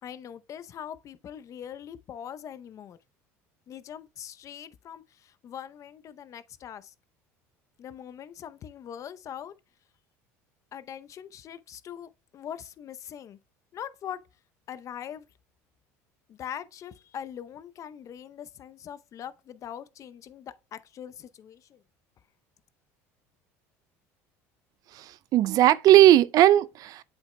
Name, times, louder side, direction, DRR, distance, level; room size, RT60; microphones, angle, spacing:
voice 1, 0.0-3.0 3.7-6.9 7.8-9.5 10.7-13.4 13.7-14.2 14.7-15.3 16.3-21.8, left 9 dB, 45° left, 0.7 m, -42 dB
voice 2, 24.9-27.0, right 13 dB, 55° right, 0.4 m, -18 dB
8.1 x 6.7 x 2.2 m
supercardioid pair, 95°, 7 cm